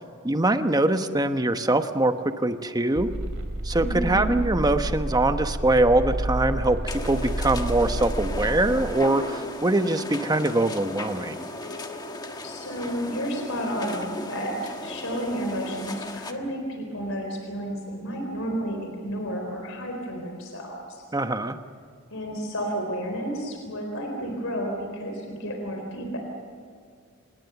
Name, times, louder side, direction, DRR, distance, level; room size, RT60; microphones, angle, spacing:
voice 1, 0.2-3.1 3.6-11.5 21.1-21.6, right 2 dB, 20° right, 8 dB, 1.0 m, -23 dB
sound 1, 3.0-8.9, right 1 dB, 70° right, 3.0 m, -30 dB
voice 2, 3.8-4.3 12.4-21.0 22.1-26.2, equal, 70° left, 2 dB, 4.1 m, -31 dB
sound 2, 6.9-16.3, left 2 dB, 20° left, 1.4 m, -36 dB
Wind instrument woodwind instrument, 8.6-15.2, equal, 35° left, 5.2 m, -48 dB
27.0 x 20.5 x 7.1 m, 2.1 s
head